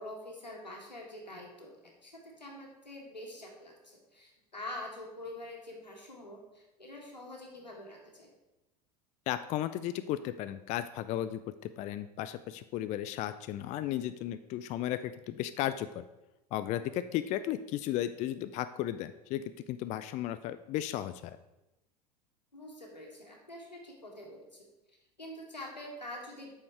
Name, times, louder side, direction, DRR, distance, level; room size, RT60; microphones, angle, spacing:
voice 1, 0.0-8.3 22.5-24.6 25.2-26.5, left 1 dB, 90° left, 0 dB, 1.9 m, -45 dB
voice 2, 9.3-11.4 11.8-16.0 16.5-21.3, left 12 dB, 35° left, 12 dB, 0.4 m, -35 dB
8.6 x 6.5 x 4.6 m, 0.98 s
figure-of-eight pair, 80°, 21 cm